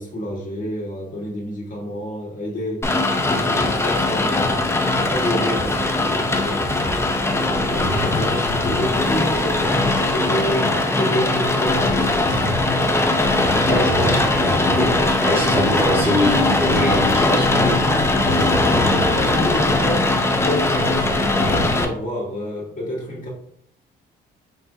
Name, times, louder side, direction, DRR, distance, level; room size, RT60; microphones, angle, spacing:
voice 1, 0.0-2.8 3.3-4.8 5.1-6.8 7.4-12.5 18.9-21.5 21.8-23.3, equal, 40° left, -3 dB, 1.7 m, -29 dB
Rain, 2.8-21.8, left 2 dB, 15° left, 0.6 m, -20 dB
sound 1, 4.2-5.3 6.3-10.9 11.4-21.8, left 2 dB, 75° left, 1.1 m, -30 dB
voice 2, 7.7-8.0 13.7-14.9 15.2-18.0, equal, 10° right, -4 dB, 1.7 m, -23 dB
4.1 x 4.1 x 2.7 m, 0.66 s
cardioid pair, 90°, 20 cm